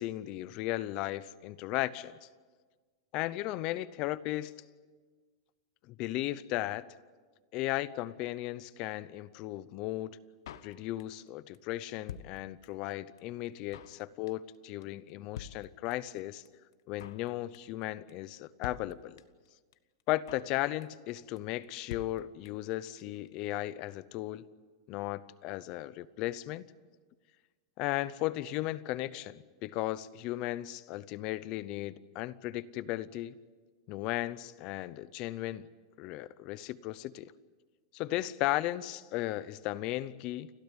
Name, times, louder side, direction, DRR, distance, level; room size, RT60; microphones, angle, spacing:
voice 1, 0.0-2.3 3.1-4.5 5.9-6.9 7.5-10.2 10.6-16.4 16.9-19.2 20.1-24.4 24.9-26.7 27.8-33.4 33.9-35.7 36.0-37.3 37.9-40.5, left 16 dB, 35° left, 18 dB, 0.6 m, -36 dB
Drum kit, 10.5-11.3 11.5-11.6 11.8-12.9 13.2-13.3 13.5-14.0 14.3-14.6 14.8-14.9 15.1-15.2 15.4-16.2 16.5-16.6 16.7-17.3 17.5-17.8 18.1-18.2 18.4-18.5 18.6-19.5 19.7-19.8 20.0-20.6 20.8-21.1 21.4-21.5 21.6-21.7 21.9-22.7 23.0-23.1 23.3-23.4, left 9 dB, 75° left, 1.1 m, -47 dB
29.5 x 13.0 x 9.8 m, 1.5 s
supercardioid pair, 170°, 2 cm